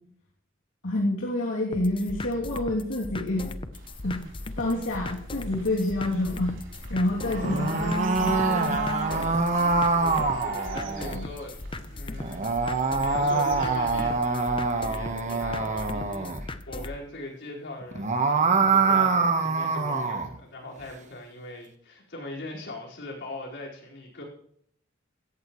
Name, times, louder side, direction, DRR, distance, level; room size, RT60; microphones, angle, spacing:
voice 1, 0.8-3.5 4.0-4.3 4.6-6.5 6.9-8.8 11.1-11.3, left 1 dB, 85° left, -5 dB, 3.0 m, -28 dB
sound 1, 1.7-17.0, left 2 dB, 25° left, 0.7 m, -38 dB
sound 2, 3.7-14.2, right 3 dB, 65° right, 3.9 m, -36 dB
sound 3, 7.3-11.2 12.2-16.4 17.8-20.3, right 4 dB, 35° right, 1.3 m, -25 dB
voice 2, 10.0-11.6 11.8-24.2, left 1 dB, 60° left, -2 dB, 5.0 m, -41 dB
17.0 x 14.0 x 3.2 m, 0.66 s
head